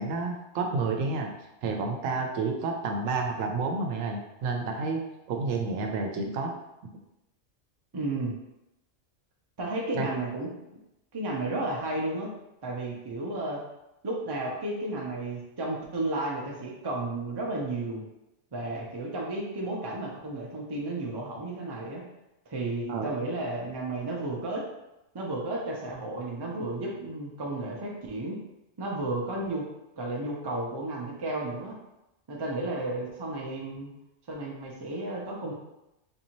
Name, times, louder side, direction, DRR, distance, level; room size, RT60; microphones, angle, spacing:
voice 1, 0.0-1.3 1.6-5.0 5.3-6.5 9.9-10.1 22.9-23.1, right 4 dB, 85° right, 3 dB, 1.0 m, -30 dB
voice 2, 7.9-8.3 9.6-10.5 11.1-12.3 12.6-13.6 14.0-18.0 18.5-22.0 22.5-24.7 25.1-28.4 28.8-29.7 30.0-31.8 32.3-33.9 34.3-35.5, right 2 dB, 30° right, -2 dB, 0.5 m, -33 dB
4.0 x 2.7 x 2.9 m, 0.92 s
omnidirectional pair, 1.3 m